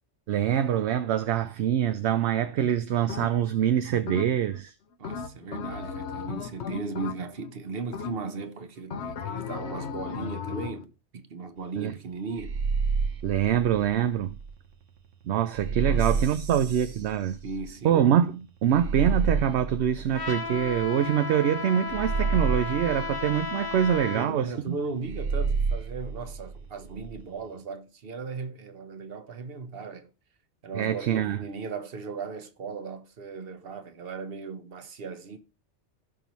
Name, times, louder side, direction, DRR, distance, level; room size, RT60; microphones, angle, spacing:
voice 1, 0.3-4.7 11.8-11.9 13.2-14.3 15.3-17.4 17.8-24.7 30.7-31.4, right 9 dB, 70° right, 0.8 m, -25 dB
sound 1, 3.1-3.6 4.1-4.6 5.0-7.5 7.9-8.5 8.9-10.8, left 6 dB, 70° left, 1.1 m, -36 dB
voice 2, 5.0-12.6 15.8-18.0 24.1-30.1 30.6-35.4, right 4 dB, 55° right, 1.2 m, -37 dB
sound 2, 12.4-14.5 15.5-17.7 18.7-21.1 21.9-24.0 25.0-27.2, right 5 dB, 85° right, 1.3 m, -30 dB
Trumpet, 20.1-24.3, left 4 dB, 20° left, 0.8 m, -34 dB
16.0 x 5.4 x 3.1 m
omnidirectional pair, 1.2 m